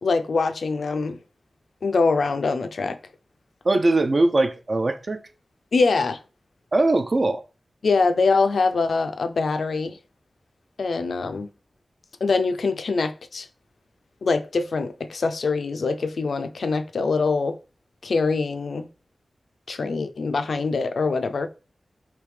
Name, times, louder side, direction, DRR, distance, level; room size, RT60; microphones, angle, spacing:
voice 1, 0.0-1.2 1.8-3.0 5.7-6.2 7.8-10.0 10.8-11.5 12.2-13.5 14.2-17.6 18.0-18.9 19.7-21.5, left 4 dB, 90° left, 0.3 m, -23 dB
voice 2, 3.6-5.2 6.7-7.4, right 2 dB, 50° right, 0.4 m, -21 dB
3.4 x 2.7 x 3.2 m
wide cardioid pair, 65°, 0 cm